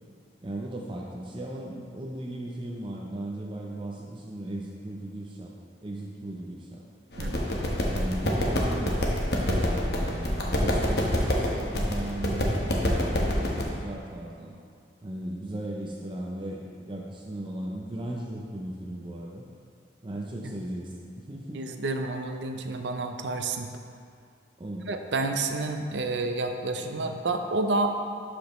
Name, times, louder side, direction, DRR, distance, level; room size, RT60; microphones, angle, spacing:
voice 1, 0.4-5.5 5.8-6.8 7.1-7.4 7.9-14.5 15.0-19.4 20.0-21.6 24.6-24.9 26.8-27.1, right 1 dB, 25° right, -2 dB, 0.5 m, -37 dB
sound 1, 7.1-13.6, equal, 60° left, 1.0 m, -27 dB
voice 2, 21.5-23.7 24.8-27.9, right 3 dB, 75° right, 6 dB, 0.5 m, -29 dB
11.5 x 5.0 x 3.1 m, 2.2 s
head